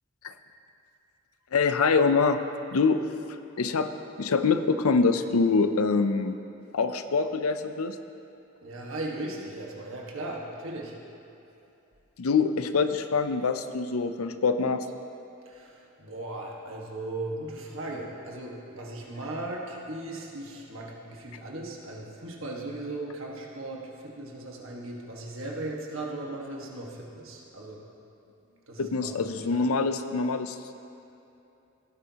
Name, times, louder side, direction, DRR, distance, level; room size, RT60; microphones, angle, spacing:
voice 1, 1.5-2.4 2.7-3.0 3.6-3.9 4.2-6.4 6.7-8.0 12.2-14.9 28.8-30.6, left 4 dB, 80° left, 9 dB, 0.5 m, -24 dB
voice 2, 8.6-10.9 15.4-27.8 28.7-29.3, right 2 dB, 65° right, -2 dB, 1.6 m, -37 dB
17.0 x 9.8 x 2.9 m, 2.8 s
head